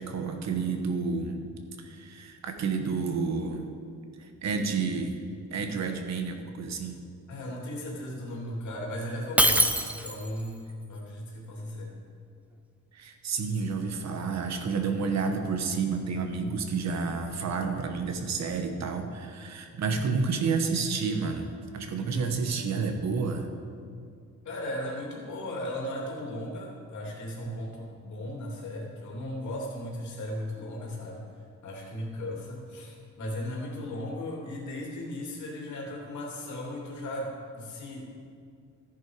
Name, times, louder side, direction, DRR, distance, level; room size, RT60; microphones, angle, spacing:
voice 1, 0.0-1.4 1.8-3.7 4.2-5.2 5.5-7.0 12.9-23.5 27.5-27.6, right 4 dB, 55° right, 5 dB, 1.3 m, -30 dB
voice 2, 7.3-12.0 24.4-31.3 31.6-38.0, left 1 dB, 60° left, -2 dB, 2.9 m, -36 dB
Shatter, 9.4-10.4, right 1 dB, 5° right, 0.5 m, -23 dB
14.0 x 10.0 x 4.7 m, 2.3 s
cardioid pair, 160°, 33 cm